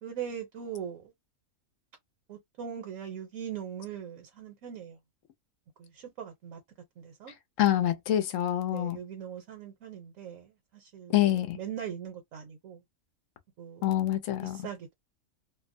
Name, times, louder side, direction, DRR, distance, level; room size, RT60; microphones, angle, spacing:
voice 1, 0.0-1.1 2.3-5.0 5.8-6.6 7.0-7.3 8.7-11.1 11.5-12.8 13.6-14.0 14.4-14.9, right 8 dB, 70° right, 1.1 m, -40 dB
voice 2, 7.6-9.0 11.1-11.6 13.8-14.7, left 12 dB, 70° left, 0.9 m, -26 dB
2.6 x 2.1 x 2.5 m
omnidirectional pair, 1.5 m